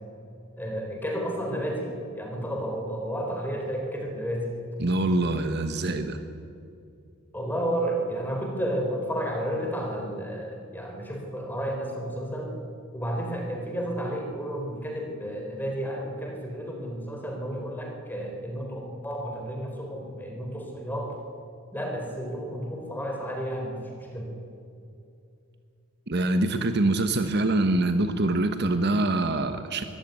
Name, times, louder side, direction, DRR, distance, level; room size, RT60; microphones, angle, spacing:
voice 1, 0.6-4.6 6.0-6.1 7.3-12.5 12.9-21.2 21.7-24.3, equal, 10° left, 1 dB, 4.0 m, -32 dB
voice 2, 4.8-6.2 26.1-29.8, right 2 dB, 50° right, 8 dB, 1.1 m, -24 dB
23.5 x 15.0 x 9.4 m, 2.5 s
head